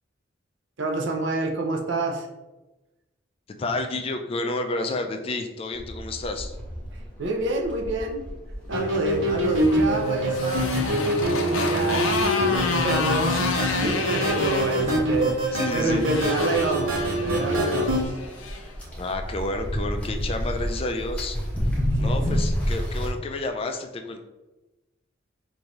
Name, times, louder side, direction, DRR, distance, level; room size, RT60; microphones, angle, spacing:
voice 1, 0.8-2.3 6.9-8.3 8.7-18.2 21.9-22.2, right 2 dB, 65° right, 3 dB, 0.6 m, -29 dB
voice 2, 3.5-6.5 14.9-16.0 19.0-21.4 22.0-24.2, left 2 dB, 30° left, 5 dB, 0.3 m, -30 dB
sound 1, 5.7-23.1, equal, 5° left, 0.7 m, -32 dB
sound 2, 8.7-18.0, right 1 dB, 85° right, 1.0 m, -25 dB
Motorcycle, 9.2-18.6, left 3 dB, 80° left, 0.5 m, -30 dB
4.9 x 2.6 x 3.0 m, 1.1 s
head